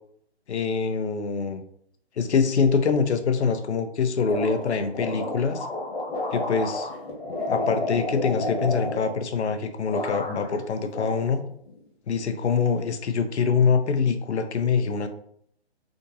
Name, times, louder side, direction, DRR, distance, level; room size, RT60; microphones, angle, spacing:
voice 1, 0.5-1.6 2.2-5.7 6.3-6.9 7.5-11.4 12.1-15.1, left 5 dB, 85° left, 8 dB, 0.7 m, -24 dB
sound 1, 4.3-9.6 9.9-10.6 10.9-11.8, left 2 dB, 60° left, 1.4 m, -31 dB
3.5 x 2.6 x 2.7 m, 0.65 s
hypercardioid pair, 165°, 33 cm